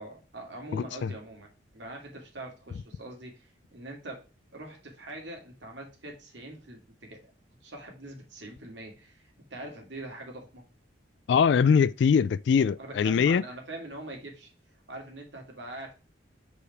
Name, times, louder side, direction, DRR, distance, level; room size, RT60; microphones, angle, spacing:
voice 1, 0.0-4.3 4.5-7.3 7.6-10.6 12.8-14.5 14.9-15.9, right 1 dB, 70° right, 2.4 m, -43 dB
voice 2, 0.7-1.1 11.3-13.4, left 6 dB, 65° left, 0.3 m, -22 dB
5.0 x 5.0 x 4.7 m
head